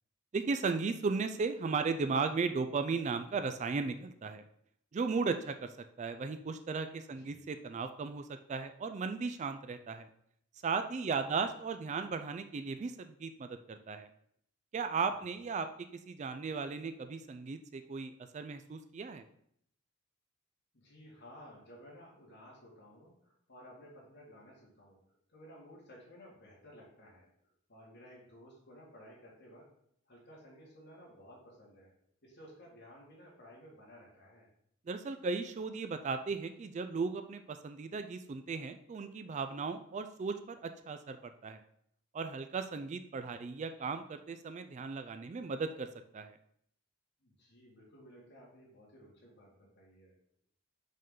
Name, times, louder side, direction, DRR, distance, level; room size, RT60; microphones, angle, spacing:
voice 1, 0.3-4.4 4.9-10.1 10.6-14.1 14.7-15.7 15.9-19.3 34.9-41.6 42.1-45.9 46.1-46.4, right 4 dB, 35° right, 9 dB, 0.3 m, -36 dB
voice 2, 20.7-25.0 25.3-27.3 27.7-29.7 30.1-31.9 32.2-34.5 47.2-50.1, equal, 55° left, -4 dB, 2.2 m, -55 dB
5.4 x 5.4 x 3.7 m, 0.69 s
head